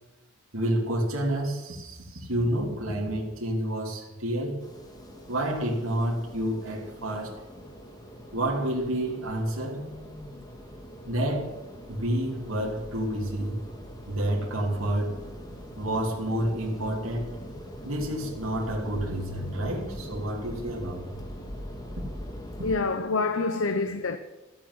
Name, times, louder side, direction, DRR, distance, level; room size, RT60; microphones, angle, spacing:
voice 1, 0.5-4.6 5.3-7.4 8.3-9.9 11.1-11.6 11.9-13.6 14.1-15.3 15.8-17.4 17.8-21.2, right 1 dB, 65° right, 3.3 m, -29 dB
sound 1, 4.6-22.8, equal, 20° left, 2.0 m, -42 dB
voice 2, 22.6-24.2, left 3 dB, 60° left, 0.9 m, -26 dB
14.0 x 8.7 x 9.7 m
head